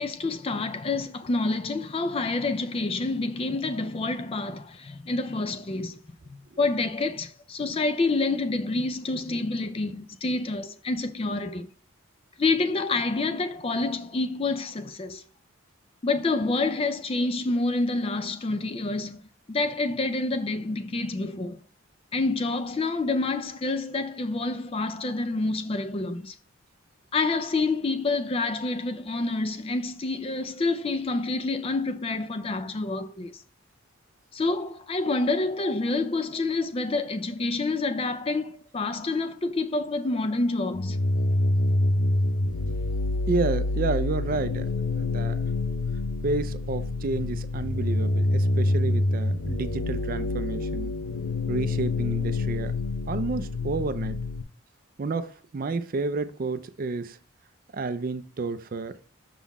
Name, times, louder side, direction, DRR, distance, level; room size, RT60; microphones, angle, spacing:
voice 1, 0.0-6.0 6.3-11.7 12.4-15.2 16.0-19.2 19.5-21.6 22.1-26.3 27.1-33.4 34.3-41.0, left 3 dB, 25° left, 0.4 m, -28 dB
sound 1, 40.7-54.4, left 2 dB, 80° left, 0.5 m, -26 dB
voice 2, 43.3-44.7 45.0-45.4 46.2-50.9 51.5-52.7 53.1-54.2 55.0-57.2 57.7-58.9, right 3 dB, 40° right, 0.4 m, -30 dB
6.0 x 3.9 x 4.1 m
head